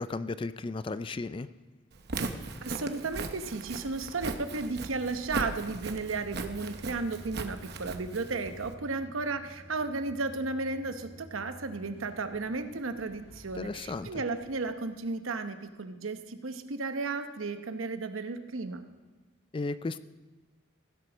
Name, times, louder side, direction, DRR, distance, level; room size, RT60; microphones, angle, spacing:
voice 1, 0.0-1.5 13.5-14.2 19.5-20.0, left 3 dB, 25° left, 14 dB, 0.3 m, -34 dB
Walk footsteps, 1.9-8.7, right 3 dB, 55° right, 0.8 m, -38 dB
voice 2, 2.6-18.8, right 3 dB, 85° right, 8 dB, 0.9 m, -34 dB
sound 1, 3.9-15.2, right 1 dB, 10° right, 4.3 m, -52 dB
16.0 x 7.9 x 6.1 m, 1.2 s
head